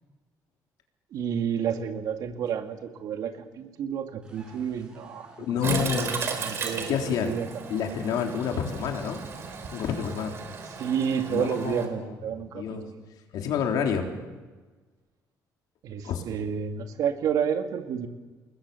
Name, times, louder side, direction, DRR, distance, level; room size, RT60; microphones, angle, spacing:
voice 1, 1.1-5.3 5.5-7.0 7.2-7.5 10.8-12.8 15.8-18.1, right 8 dB, 60° right, 6 dB, 2.4 m, -30 dB
sound 1, 4.2-10.0, right 2 dB, 15° right, 7.4 m, -51 dB
voice 2, 5.4-6.1 6.8-7.4 7.7-9.2 9.7-10.4 11.3-12.9 13.3-14.1 16.0-16.2, left 7 dB, 70° left, 3 dB, 3.8 m, -29 dB
Toilet flush, 5.6-11.9, right 5 dB, 40° right, 3.9 m, -35 dB
29.0 x 21.0 x 7.2 m, 1.3 s
cardioid pair, 170°, 7 cm